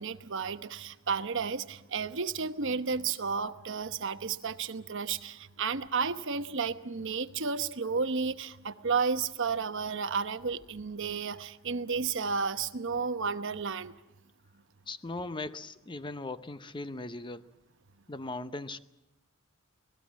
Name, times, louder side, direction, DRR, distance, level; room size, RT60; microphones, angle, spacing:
voice 1, 0.0-13.9, right 5 dB, 60° right, 11 dB, 1.0 m, -32 dB
voice 2, 14.9-17.4 18.1-18.8, left 2 dB, 20° left, 12 dB, 0.7 m, -38 dB
25.5 x 18.5 x 7.4 m, 0.97 s
head